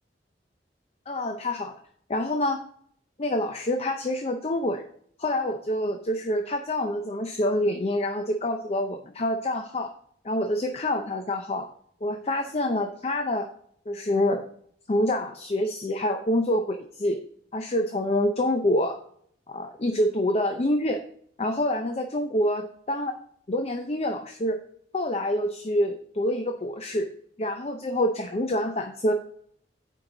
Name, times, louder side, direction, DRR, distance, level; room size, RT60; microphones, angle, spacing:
voice 1, 1.1-1.7 2.1-2.6 3.2-4.8 5.2-9.9 10.2-11.7 12.0-13.5 13.9-14.4 14.9-17.2 17.5-19.0 19.5-21.0 21.4-23.1 23.5-24.6 24.9-27.1 27.4-29.1, left 1 dB, 35° left, 5 dB, 0.6 m, -26 dB
9.2 x 4.7 x 3.8 m, 0.64 s
head